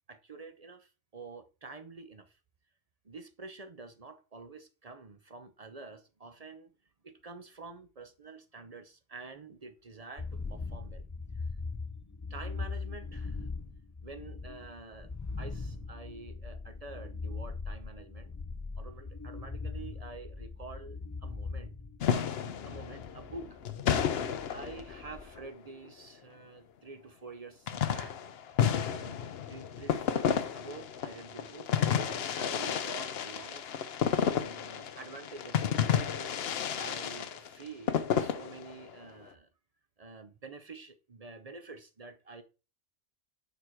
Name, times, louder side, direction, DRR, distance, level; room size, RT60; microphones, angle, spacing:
voice 1, 0.1-2.4 3.0-6.7 7.0-11.1 11.3-11.5 12.3-13.5 14.0-15.1 15.4-18.3 18.8-21.7 22.1-22.3 22.7-23.6 24.5-28.2 28.9-29.2 29.5-33.9 34.3-36.3 36.7-39.5 40.0-42.4, right 3 dB, 40° right, 0.7 m, -48 dB
sound 1, 10.2-25.4, left 4 dB, 25° left, 0.4 m, -40 dB
sound 2, 22.0-25.5 27.7-38.9, left 8 dB, 65° left, 0.9 m, -31 dB
6.7 x 4.7 x 4.4 m
omnidirectional pair, 1.1 m